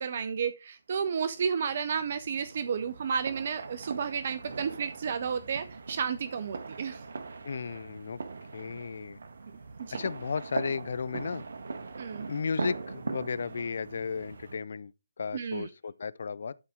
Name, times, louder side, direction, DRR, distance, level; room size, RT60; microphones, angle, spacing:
voice 1, 0.0-7.0 9.8-10.0 12.0-12.3 15.3-15.7, right 6 dB, 50° right, 0.7 m, -32 dB
sound 1, 1.1-14.6, right 4 dB, 65° right, 1.2 m, -41 dB
voice 2, 7.4-8.2 8.5-9.2 9.9-11.4 12.3-16.5, left 5 dB, 60° left, 0.5 m, -34 dB
12.5 x 4.2 x 3.7 m
figure-of-eight pair, 150°, 0 cm